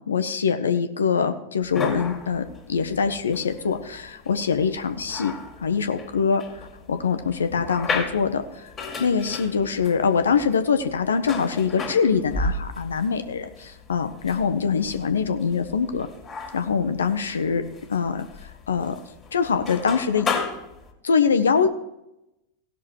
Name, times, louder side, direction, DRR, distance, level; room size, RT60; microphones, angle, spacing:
voice 1, 0.1-5.3 5.6-8.4 9.0-16.1 16.5-17.6 17.9-18.2 18.7-18.9 19.3-20.3 21.0-21.7, left 6 dB, 70° left, 8 dB, 0.8 m, -23 dB
sound 1, 1.6-20.9, left 4 dB, 20° left, 2.1 m, -35 dB
17.0 x 6.2 x 4.6 m, 0.89 s
figure-of-eight pair, 90°, 0 cm